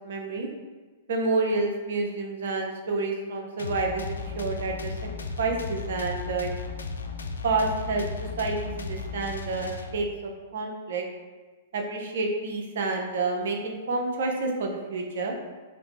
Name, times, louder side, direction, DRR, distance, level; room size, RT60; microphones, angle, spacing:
voice 1, 0.0-0.5 1.1-5.0 5.4-6.5 7.4-8.1 8.4-11.0 11.7-15.3, right 3 dB, 70° right, 1 dB, 0.8 m, -29 dB
sound 1, 3.6-10.3, left 4 dB, 90° left, 0.4 m, -35 dB
3.3 x 3.0 x 4.0 m, 1.4 s
hypercardioid pair, 120°, 0 cm